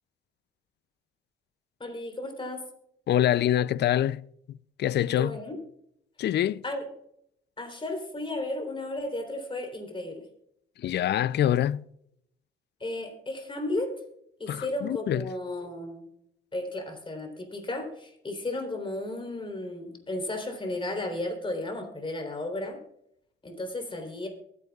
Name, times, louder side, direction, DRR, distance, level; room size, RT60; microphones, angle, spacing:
voice 1, 1.8-2.7 5.2-5.6 6.6-6.8 7.6-10.3 12.8-14.0 14.4-16.1 16.5-22.8 23.4-24.3, left 2 dB, 25° left, 3.6 m, -34 dB
voice 2, 3.1-4.3 4.8-5.4 6.2-6.6 10.8-11.8 14.5-15.2, left 11 dB, 60° left, 0.5 m, -25 dB
23.0 x 9.6 x 2.4 m
cardioid pair, 90°, 20 cm